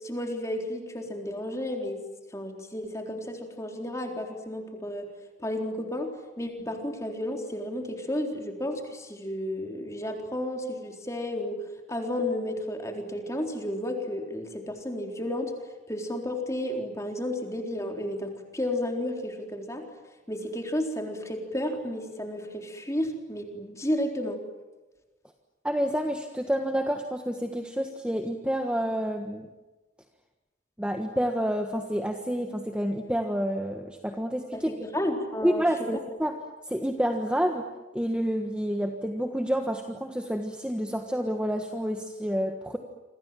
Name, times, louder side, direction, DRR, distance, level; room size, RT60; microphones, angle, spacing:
voice 1, 0.0-2.0 2.3-5.1 5.4-11.6 11.9-15.5 15.9-19.9 20.3-24.4 34.5-35.7, left 1 dB, 15° left, 2 dB, 3.9 m, -32 dB
voice 2, 25.6-29.5 30.8-34.7 35.4-36.4 36.6-37.6 37.9-42.8, equal, 5° right, 4 dB, 1.4 m, -29 dB
28.5 x 26.0 x 7.6 m, 1.1 s
head